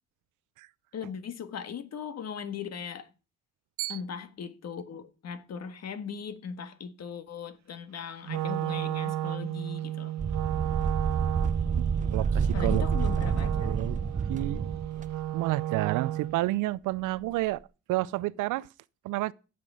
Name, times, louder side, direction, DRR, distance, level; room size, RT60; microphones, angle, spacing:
voice 1, 0.9-3.1 3.9-10.1 12.5-13.7, left 7 dB, 60° left, 1.6 m, -38 dB
Wind instrument woodwind instrument, 8.2-16.5, right 13 dB, 65° right, 0.9 m, -33 dB
sound 1, 10.2-15.1, right 6 dB, 25° right, 0.5 m, -28 dB
voice 2, 11.7-12.9 13.6-14.7 15.3-17.6 17.9-18.7 19.0-19.3, right 18 dB, 85° right, 0.5 m, -30 dB
15.5 x 6.0 x 4.9 m
cardioid pair, 90°, 30 cm